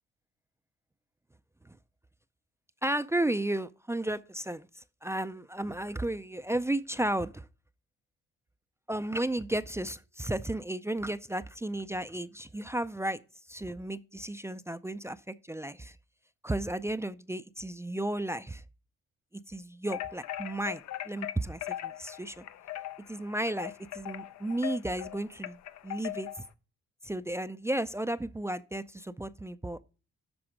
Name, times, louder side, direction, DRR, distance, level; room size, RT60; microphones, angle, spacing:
voice 1, 2.8-7.5 8.9-13.2 13.5-16.0 16.4-18.6 19.5-22.4 23.1-25.6 25.8-26.3 27.0-29.8, right 1 dB, 10° right, 0.4 m, -33 dB
sound 1, 19.9-26.5, left 13 dB, 65° left, 0.7 m, -40 dB
12.0 x 4.3 x 4.9 m
cardioid pair, 90°, 30 cm